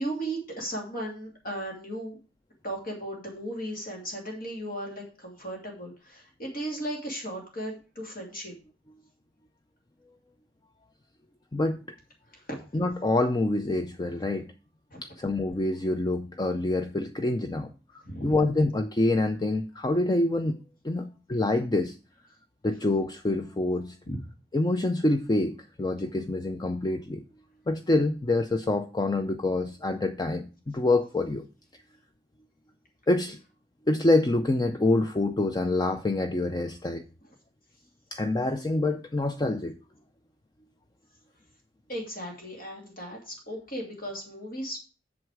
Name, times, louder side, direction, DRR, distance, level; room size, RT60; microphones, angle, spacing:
voice 1, 0.0-2.2 2.6-8.5 12.5-12.6 14.9-15.0 18.0-18.4 24.1-24.2 41.9-44.8, right 1 dB, 50° left, 0 dB, 2.7 m, -36 dB
voice 2, 11.5-11.8 12.7-14.5 15.0-17.7 18.2-20.6 20.8-22.0 22.6-24.0 24.5-27.2 27.7-31.4 33.1-33.4 33.9-37.0 38.1-39.7, left 2 dB, 20° left, 8 dB, 0.5 m, -26 dB
7.9 x 7.2 x 4.8 m, 0.34 s
head